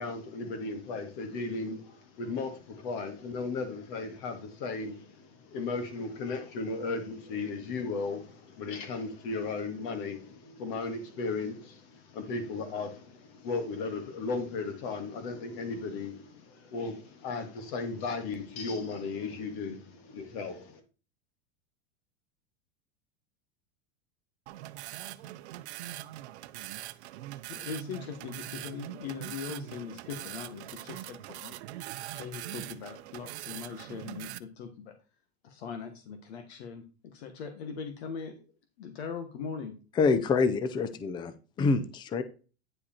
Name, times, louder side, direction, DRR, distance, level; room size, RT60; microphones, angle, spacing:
voice 1, 0.0-20.8, left 3 dB, 50° left, 2.0 m, -36 dB
sound 1, 24.5-34.4, right 15 dB, 85° right, 0.7 m, -42 dB
voice 2, 27.5-31.6 32.1-34.9 35.4-38.4 38.8-39.7, left 6 dB, 75° left, 1.5 m, -40 dB
voice 3, 40.0-41.3 41.6-42.2, left 4 dB, 15° left, 0.5 m, -26 dB
9.8 x 5.0 x 4.3 m
supercardioid pair, 160°, 33 cm